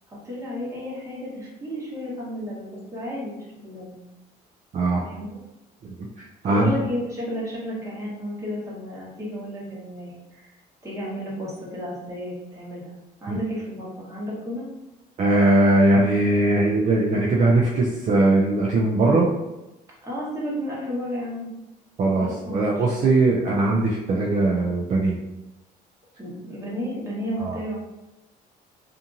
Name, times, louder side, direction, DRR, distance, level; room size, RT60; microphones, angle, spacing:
voice 1, 0.1-4.0 5.0-5.4 6.4-10.5 10.8-12.9 13.2-14.7 19.0-19.3 20.0-21.5 22.2-22.7 22.9-23.1 26.2-27.7, equal, 20° right, -6 dB, 1.2 m, -32 dB
voice 2, 5.8-6.7 13.3-13.4 15.2-19.3 22.0-25.2 27.4-27.6, right 2 dB, 45° right, -2 dB, 0.4 m, -20 dB
2.7 x 2.5 x 2.6 m, 0.97 s
cardioid pair, 110°, 17 cm